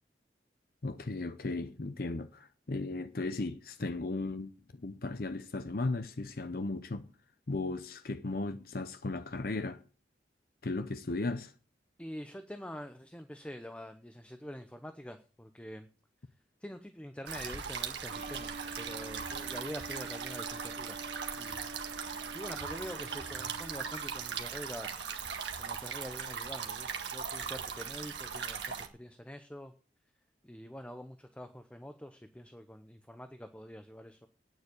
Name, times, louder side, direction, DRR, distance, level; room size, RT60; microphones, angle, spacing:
voice 1, 0.8-7.0 7.5-9.8 10.6-11.5, left 2 dB, 55° left, 0.7 m, -36 dB
voice 2, 12.0-15.9 16.6-21.0 21.4-22.0 22.3-25.0 25.6-29.7 30.4-34.3, equal, 5° left, 0.8 m, -45 dB
sound 1, 17.3-28.9, right 6 dB, 85° right, 1.8 m, -39 dB
sound 2, 18.1-24.4, right 2 dB, 40° right, 0.6 m, -47 dB
9.5 x 8.1 x 8.5 m
head